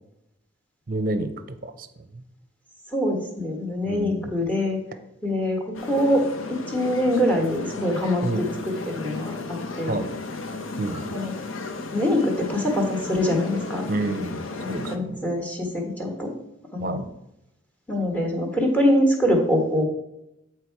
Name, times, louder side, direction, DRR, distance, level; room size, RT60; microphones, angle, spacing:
voice 1, 0.9-2.2 3.8-4.3 8.2-8.5 9.9-10.1 10.8-11.1 13.9-15.3 16.8-17.1, right 2 dB, 45° right, 11 dB, 0.6 m, -29 dB
voice 2, 2.9-4.8 5.2-10.0 11.1-11.3 11.9-13.8 14.6-16.3 16.7-17.0 17.9-19.8, left 1 dB, 5° left, 2 dB, 1.3 m, -24 dB
sound 1, 5.7-15.0, left 3 dB, 80° left, 0.8 m, -34 dB
8.5 x 4.6 x 4.6 m, 0.87 s
head